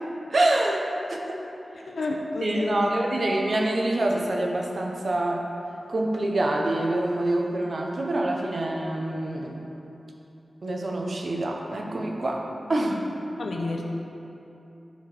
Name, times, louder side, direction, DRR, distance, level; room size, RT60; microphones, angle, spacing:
voice 1, 0.3-0.8 1.1-1.4 2.4-5.5 5.9-9.6 10.6-12.4 12.7-13.0, right 1 dB, 55° right, 0 dB, 1.1 m, -26 dB
voice 2, 1.9-3.2 13.4-13.8, left 2 dB, 80° left, 0 dB, 0.8 m, -30 dB
12.5 x 4.7 x 5.1 m, 2.9 s
wide cardioid pair, 120°, 0 cm